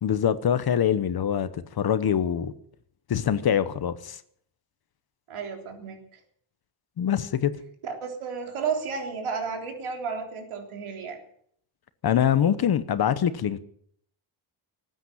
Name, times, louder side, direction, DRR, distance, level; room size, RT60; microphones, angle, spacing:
voice 1, 0.0-2.5 3.1-4.2 7.0-7.5 12.0-13.6, left 9 dB, 45° left, 1.0 m, -24 dB
voice 2, 5.3-6.2 7.8-11.2, right 5 dB, 75° right, 3.6 m, -32 dB
19.0 x 9.2 x 7.8 m
wide cardioid pair, 170°, 50 cm